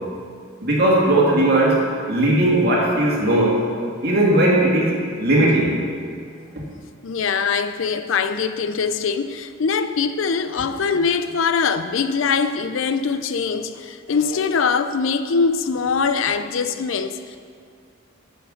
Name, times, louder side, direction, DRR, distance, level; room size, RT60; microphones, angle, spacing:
voice 1, 0.6-3.6 4.0-5.8, right 1 dB, 50° right, 2.3 m, -18 dB
voice 2, 7.0-17.4, left 5 dB, 75° left, 0.5 m, -22 dB
8.2 x 7.3 x 6.4 m
head